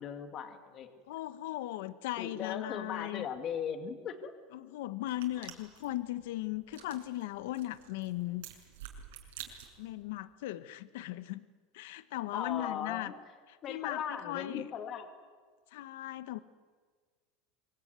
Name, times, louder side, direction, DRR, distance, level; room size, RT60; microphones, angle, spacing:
voice 1, 0.0-0.9 2.2-4.3 12.3-13.1 13.6-15.1, left 8 dB, 35° left, 7 dB, 2.2 m, -38 dB
voice 2, 1.1-3.3 4.5-8.4 9.8-11.4 11.7-13.1 13.5-14.7 15.7-16.4, left 15 dB, 75° left, 14 dB, 0.9 m, -38 dB
sound 1, 5.1-10.0, right 10 dB, 85° right, 6.0 m, -50 dB
25.0 x 23.0 x 9.4 m, 1.5 s
supercardioid pair, 155°, 0 cm